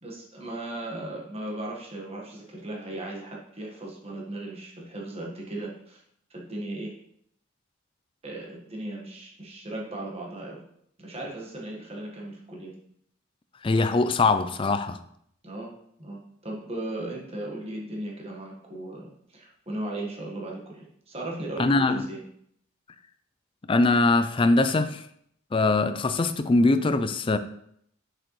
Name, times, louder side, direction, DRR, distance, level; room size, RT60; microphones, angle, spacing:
voice 1, 0.0-6.0 6.3-6.9 8.2-10.6 11.0-12.7 15.4-15.7 16.0-16.2 16.4-22.2, right 1 dB, 30° right, 1.5 m, -37 dB
voice 2, 13.6-15.0 21.6-22.1 23.7-25.0 25.5-27.4, left 3 dB, 25° left, 0.4 m, -22 dB
6.5 x 6.4 x 3.1 m
head